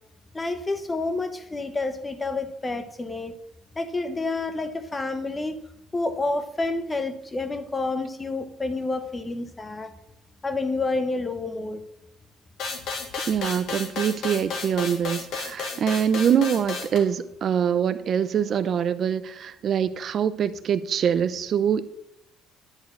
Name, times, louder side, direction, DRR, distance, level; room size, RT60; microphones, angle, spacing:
voice 1, 0.3-3.3 3.8-5.5 5.9-9.9 10.4-11.8, left 3 dB, 10° left, 10 dB, 0.8 m, -29 dB
sound 1, 12.6-17.0, left 4 dB, 50° left, 1.8 m, -32 dB
voice 2, 13.3-21.9, right 8 dB, 35° right, 14 dB, 0.5 m, -24 dB
10.5 x 4.7 x 7.8 m, 0.84 s
cardioid pair, 170°, 0 cm